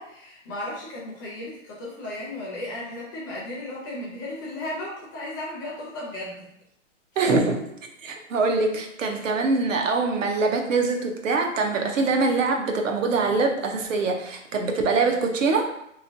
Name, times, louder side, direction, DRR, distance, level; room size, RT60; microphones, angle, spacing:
voice 1, 0.0-6.5 7.1-7.2, left 1 dB, 15° left, -5 dB, 0.4 m, -35 dB
voice 2, 7.2-7.7 8.0-15.6, right 3 dB, 85° right, 2 dB, 0.8 m, -23 dB
3.0 x 2.8 x 2.6 m, 0.76 s
hypercardioid pair, 150°, 38 cm